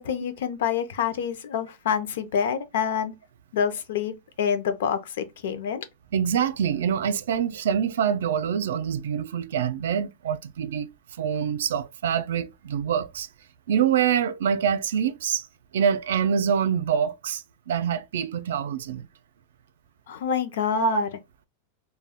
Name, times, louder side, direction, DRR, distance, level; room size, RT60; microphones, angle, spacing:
voice 1, 0.0-3.1 3.5-5.9 20.1-21.1, left 8 dB, 70° left, 0.5 m, -27 dB
voice 2, 6.1-10.9 11.2-13.3 13.7-15.5 15.7-19.1 20.3-20.4 20.7-21.0, right 8 dB, 85° right, 0.3 m, -25 dB
2.2 x 2.1 x 3.4 m
supercardioid pair, 175°, 0 cm